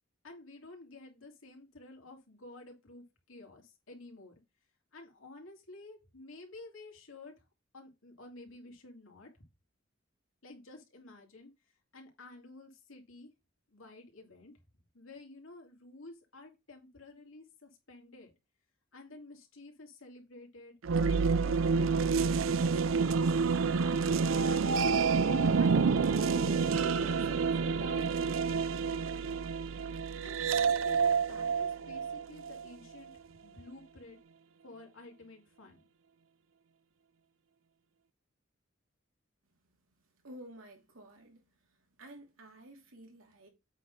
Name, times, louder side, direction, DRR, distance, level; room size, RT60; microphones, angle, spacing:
voice 1, 0.2-4.4 4.9-7.4 7.7-9.3 10.4-11.5 11.9-13.3 13.7-14.5 14.9-18.3 18.9-20.8 21.1-24.0 24.3-25.0 25.6-28.6 30.2-33.1 33.4-34.2 34.6-35.8, left 2 dB, 90° left, 2.8 m, -51 dB
sound 1, 20.8-32.7, right 5 dB, 70° right, 0.5 m, -28 dB
voice 2, 40.2-43.5, right 1 dB, 90° right, 2.8 m, -52 dB
8.2 x 4.1 x 5.4 m
head